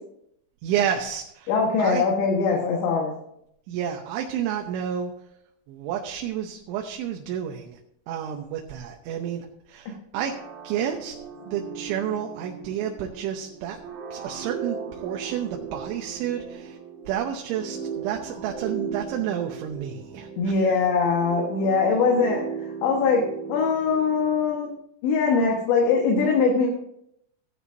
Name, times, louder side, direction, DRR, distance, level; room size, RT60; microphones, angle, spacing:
voice 1, 0.6-1.5 1.8-2.0 3.7-5.1 5.7-7.8 8.1-10.3 10.6-11.2 11.4-13.8 14.1-16.8 17.1-20.8, right 9 dB, 80° right, 2 dB, 3.2 m, -30 dB
voice 2, 1.5-3.1 20.4-22.4 22.8-24.7 25.0-26.7, left 5 dB, 75° left, -1 dB, 3.6 m, -22 dB
sound 1, 10.1-24.7, right 6 dB, 55° right, 2.0 m, -37 dB
17.5 x 11.0 x 2.7 m, 0.74 s
omnidirectional pair, 5.4 m